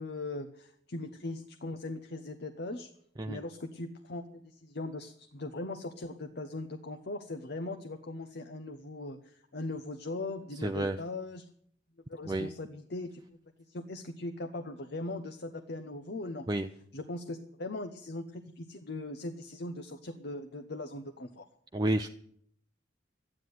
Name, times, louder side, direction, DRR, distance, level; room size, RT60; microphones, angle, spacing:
voice 1, 0.0-2.9 3.3-11.5 12.1-13.2 13.7-16.4 16.9-21.5, left 2 dB, 55° left, 7 dB, 0.9 m, -40 dB
voice 2, 10.6-11.0 12.2-12.5 16.5-16.7 21.7-22.1, right 1 dB, 20° right, 5 dB, 0.5 m, -30 dB
12.5 x 9.8 x 9.4 m, 0.66 s
head